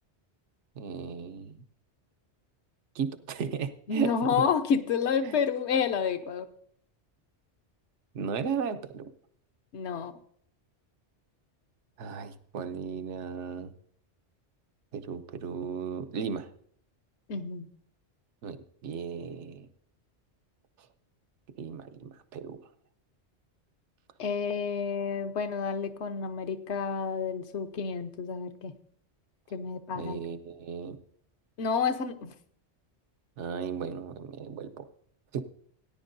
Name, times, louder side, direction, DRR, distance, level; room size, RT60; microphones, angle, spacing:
voice 1, 0.8-1.6 2.9-4.4 5.2-5.4 8.1-9.1 12.0-13.7 14.9-16.5 18.4-18.6 18.8-19.7 21.6-22.6 29.9-31.0 33.4-34.8 35.3-35.4, right 6 dB, 85° right, 10 dB, 1.1 m, -35 dB
voice 2, 3.9-6.5 9.7-10.1 17.3-17.7 24.2-28.7 29.5-30.2 31.6-32.3, left 6 dB, 75° left, 10 dB, 1.1 m, -29 dB
18.0 x 10.5 x 2.6 m, 0.63 s
omnidirectional pair, 1.2 m